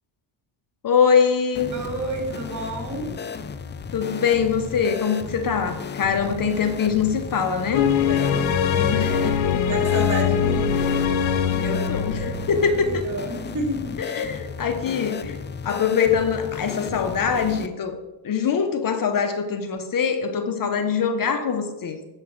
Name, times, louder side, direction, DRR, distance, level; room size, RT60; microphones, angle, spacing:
voice 1, 0.8-1.7 3.9-7.9 8.9-9.6 9.9-10.0 11.6-12.9 14.1-15.4 15.6-18.0 18.2-22.0, left 6 dB, 45° left, 7 dB, 1.0 m, -23 dB
sound 1, 1.5-17.7, left 5 dB, 25° left, 0.5 m, -35 dB
voice 2, 1.7-3.1 8.1-11.1 11.9-12.0 12.5-14.0, right 1 dB, 40° right, 0 dB, 3.3 m, -31 dB
sound 2, 7.7-12.9, left 7 dB, 75° left, 1.0 m, -22 dB
8.2 x 5.6 x 6.2 m, 1.1 s
cardioid pair, 95°, 47 cm